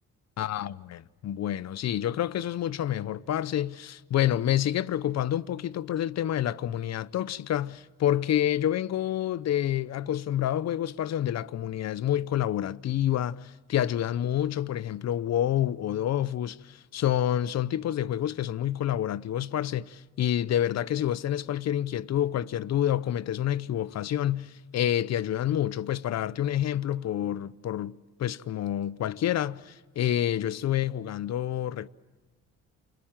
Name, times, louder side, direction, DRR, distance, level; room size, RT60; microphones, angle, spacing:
voice 1, 0.4-31.9, left 11 dB, 60° left, 0.7 m, -28 dB
29.5 x 22.5 x 7.4 m
cardioid pair, 90°, 30 cm